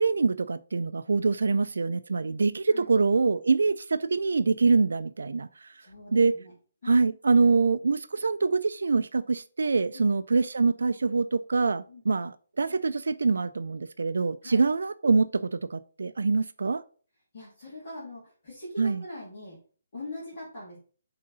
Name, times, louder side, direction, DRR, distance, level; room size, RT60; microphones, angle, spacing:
voice 1, 0.0-5.7 6.1-6.4 6.9-16.8 18.8-19.0, right 4 dB, 85° right, 0.3 m, -25 dB
voice 2, 5.8-6.5 6.8-7.0 9.9-10.2 11.9-12.0 14.4-14.6 17.3-19.6 19.9-20.8, left 1 dB, 35° left, 2.4 m, -42 dB
7.6 x 3.8 x 3.9 m
hypercardioid pair, 180°, 0 cm